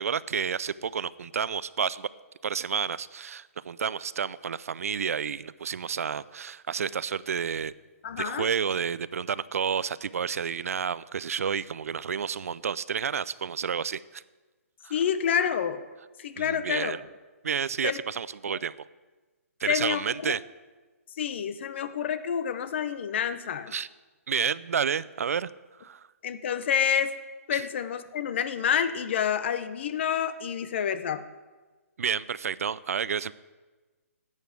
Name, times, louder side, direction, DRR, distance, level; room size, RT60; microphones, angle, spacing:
voice 1, 0.0-2.1 2.4-7.7 8.2-14.2 14.8-14.9 16.4-17.0 17.4-18.8 19.6-20.4 23.7-23.9 24.3-25.5 25.8-26.0 27.5-27.6 32.0-33.3, right 7 dB, 70° right, 19 dB, 0.5 m, -30 dB
voice 2, 8.0-8.5 14.9-15.8 16.2-17.0 17.8-18.0 18.5-18.6 19.7-20.0 21.2-23.7 26.2-27.2 27.5-31.2, left 8 dB, 50° left, 13 dB, 0.9 m, -28 dB
11.5 x 8.3 x 8.2 m, 1.3 s
hypercardioid pair, 155°, 8 cm